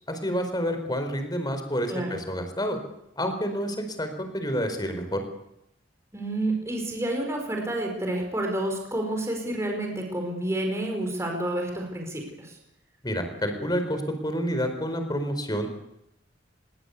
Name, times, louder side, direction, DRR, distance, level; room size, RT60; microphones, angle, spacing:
voice 1, 0.1-2.8 3.2-5.2 13.0-15.7, equal, 20° left, 7 dB, 4.6 m, -29 dB
voice 2, 6.1-12.6, right 1 dB, 15° right, 2 dB, 5.2 m, -29 dB
25.0 x 22.5 x 8.4 m, 0.82 s
head